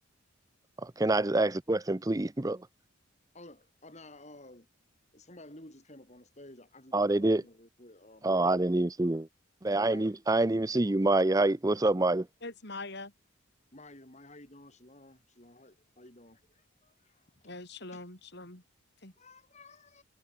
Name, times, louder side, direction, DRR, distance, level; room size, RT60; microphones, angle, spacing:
voice 1, 0.8-2.6 6.9-7.4 8.2-9.3 9.6-12.3, right 2 dB, 15° right, 0.5 m, -26 dB
voice 2, 3.3-4.7 5.1-8.6 9.6-10.2 10.6-11.1 13.7-17.5 17.9-18.0 19.2-20.0, left 1 dB, 35° left, 6.3 m, -53 dB
voice 3, 12.4-13.1 17.4-18.6 19.0-19.1, left 2 dB, 55° left, 5.9 m, -43 dB
head